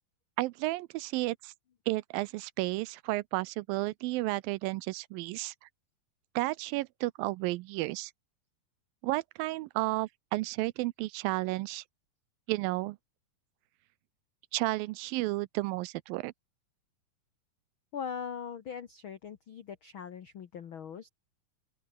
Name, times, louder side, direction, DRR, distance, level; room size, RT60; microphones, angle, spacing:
voice 1, 0.4-1.5 1.9-5.5 6.4-8.1 9.0-11.8 12.5-13.0 14.5-16.3, right 20 dB, 80° right, 2.3 m, -32 dB
voice 2, 17.9-21.1, left 7 dB, 80° left, 1.1 m, -41 dB
open air
omnidirectional pair, 4.3 m